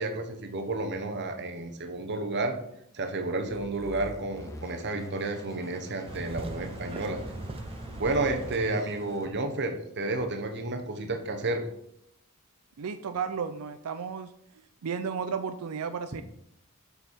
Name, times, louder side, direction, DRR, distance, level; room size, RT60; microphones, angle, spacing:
voice 1, 0.0-2.5 2.9-7.2 8.0-11.6, right 2 dB, 55° right, 5 dB, 1.0 m, -31 dB
sound 1, 3.5-9.3, left 1 dB, 15° left, 0.9 m, -46 dB
sound 2, 6.1-8.6, right 2 dB, 25° right, 0.6 m, -39 dB
voice 2, 12.8-14.3 14.8-16.2, right 6 dB, 80° right, 10 dB, 0.4 m, -33 dB
6.9 x 5.5 x 4.5 m, 0.73 s
head